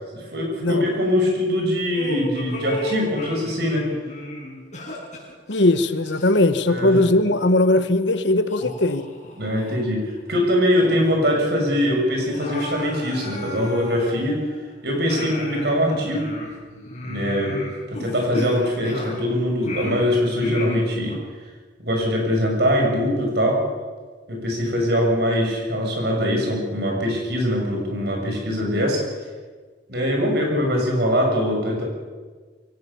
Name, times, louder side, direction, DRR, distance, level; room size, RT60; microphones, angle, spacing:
voice 1, 0.1-3.9 6.7-7.0 9.4-10.0 10.3-14.4 14.8-16.3 17.0-17.6 17.9-21.2 21.8-23.6 24.3-29.0 29.9-31.8, equal, 60° right, 1 dB, 6.5 m, -22 dB
sound 1, 1.9-6.6 6.9-7.1 7.8-7.9 8.5-9.8 10.2-10.3 10.7-11.3 11.5-11.6 12.1-14.6 15.1-19.3 19.6-21.2, left 1 dB, 40° left, 6.8 m, -34 dB
voice 2, 5.5-9.1, left 2 dB, 75° left, 11 dB, 1.2 m, -19 dB
22.5 x 17.5 x 6.9 m, 1.4 s
head